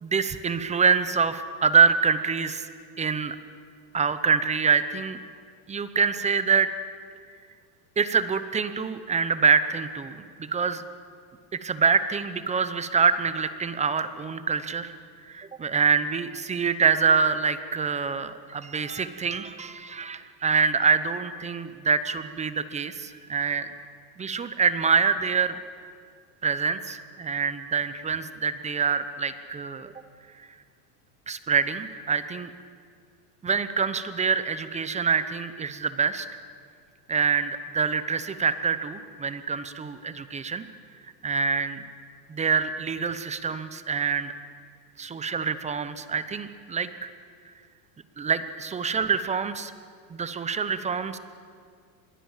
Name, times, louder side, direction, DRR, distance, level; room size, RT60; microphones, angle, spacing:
voice 1, 0.0-2.7 3.0-3.4 3.9-5.2 5.7-6.7 8.0-10.8 11.5-15.0 15.3-23.7 24.2-25.6 26.4-29.9 30.4-30.5 31.3-32.5 33.4-36.3 37.1-40.6 41.2-41.8 42.3-44.3 45.0-47.1 48.2-49.7 50.1-51.2, right 5 dB, 15° right, 12 dB, 0.8 m, -25 dB
26.0 x 21.5 x 7.4 m, 2.2 s
supercardioid pair, 145°, 49 cm